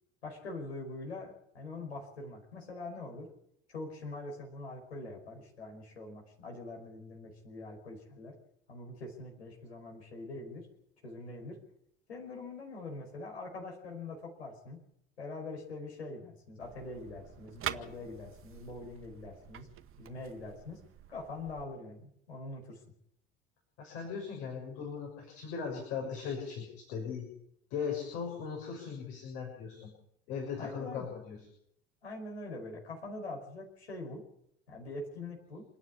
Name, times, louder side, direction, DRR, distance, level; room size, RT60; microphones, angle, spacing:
voice 1, 0.2-3.3 3.7-8.3 8.7-10.7 11.0-11.6 12.1-14.8 15.2-19.7 20.0-20.8 21.1-22.8 30.6-31.1 32.0-34.2 34.7-35.6, left 2 dB, 85° left, 1 dB, 5.1 m, -43 dB
sound 1, 16.6-21.6, right 11 dB, 40° right, 1.3 m, -45 dB
voice 2, 23.8-27.3 27.7-29.9 30.3-31.4, left 6 dB, 65° left, 0 dB, 6.7 m, -38 dB
27.5 x 9.9 x 9.7 m, 0.72 s
figure-of-eight pair, 65°, 32 cm